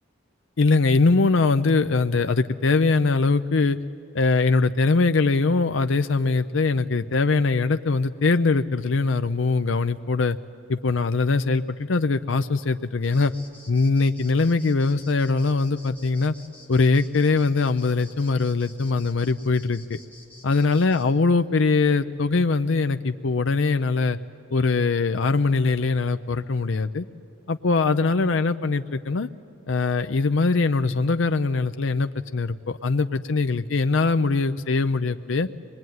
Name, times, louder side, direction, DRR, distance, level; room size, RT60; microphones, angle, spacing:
voice 1, 0.6-3.8 4.1-10.4 10.7-13.3 13.7-16.3 16.7-20.0 20.4-24.2 24.5-27.0 27.5-29.3 29.7-35.5, left 3 dB, 70° left, 9 dB, 0.6 m, -22 dB
sound 1, 13.0-21.0, left 2 dB, 10° left, 1.9 m, -50 dB
25.5 x 20.5 x 9.4 m, 2.6 s
head